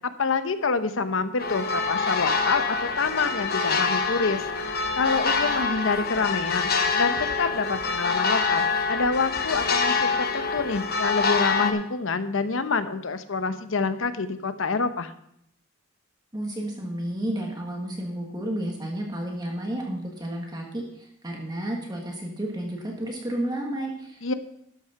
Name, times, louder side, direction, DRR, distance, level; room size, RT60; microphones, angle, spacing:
voice 1, 0.0-15.1 24.2-24.3, left 4 dB, 75° left, 11 dB, 0.8 m, -27 dB
sound 1, 1.4-11.7, left 4 dB, 50° left, 1.1 m, -25 dB
voice 2, 16.3-24.3, right 1 dB, 20° right, 0 dB, 1.6 m, -32 dB
12.5 x 6.5 x 5.8 m, 0.75 s
head